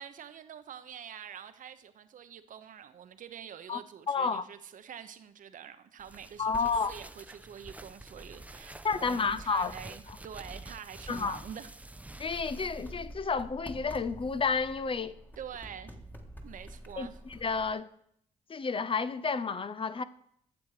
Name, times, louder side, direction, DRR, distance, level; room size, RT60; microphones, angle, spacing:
voice 1, 0.0-11.7 15.4-15.9 16.4-17.2, right 8 dB, 60° right, 0.9 m, -46 dB
voice 2, 4.1-4.5 6.4-6.9 8.8-9.7 11.1-11.4 12.2-15.2 17.0-17.9 18.5-20.0, left 5 dB, 35° left, 0.6 m, -31 dB
sound 1, 6.0-13.1, right 2 dB, 10° right, 0.6 m, -48 dB
sound 2, 12.3-17.7, equal, 10° left, 1.7 m, -47 dB
12.0 x 7.3 x 4.9 m
supercardioid pair, 65°, 15 cm